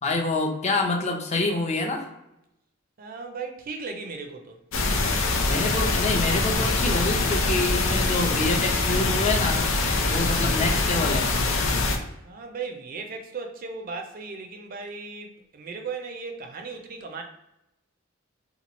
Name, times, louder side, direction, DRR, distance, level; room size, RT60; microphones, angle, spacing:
voice 1, 0.0-2.1 5.4-9.7 10.1-11.3, left 2 dB, 35° left, 1 dB, 0.5 m, -27 dB
voice 2, 3.0-4.6 12.2-17.2, right 4 dB, 45° right, 4 dB, 0.5 m, -36 dB
sound 1, 4.7-12.0, left 3 dB, 85° left, 0.6 m, -24 dB
3.0 x 2.3 x 4.0 m, 0.84 s
head